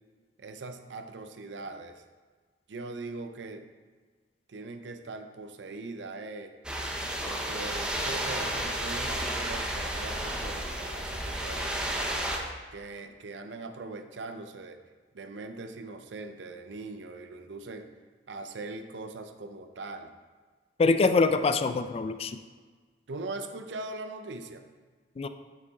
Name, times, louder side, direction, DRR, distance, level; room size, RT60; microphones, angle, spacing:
voice 1, 0.4-2.0 2.7-3.7 4.5-6.5 7.2-12.2 12.7-14.8 15.1-17.9 18.3-20.1 23.1-24.6, right 3 dB, 75° right, 7 dB, 0.6 m, -41 dB
sound 1, 6.6-12.4, right 1 dB, 5° right, 0.7 m, -32 dB
voice 2, 20.8-22.4 25.2-25.3, left 4 dB, 35° left, 10 dB, 0.3 m, -24 dB
6.6 x 5.9 x 4.0 m, 1.4 s
head